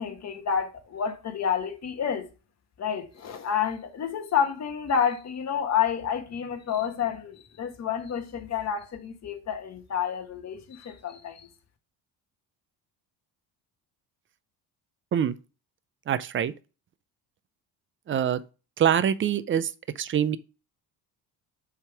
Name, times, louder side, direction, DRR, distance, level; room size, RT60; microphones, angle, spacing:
voice 1, 0.0-2.3 2.8-11.5, left 7 dB, 40° left, 1.4 m, -29 dB
voice 2, 16.1-16.5 18.1-18.4 18.8-19.7 20.0-20.4, right 9 dB, 30° right, 0.4 m, -24 dB
7.2 x 3.6 x 4.7 m
cardioid pair, 125°, 41 cm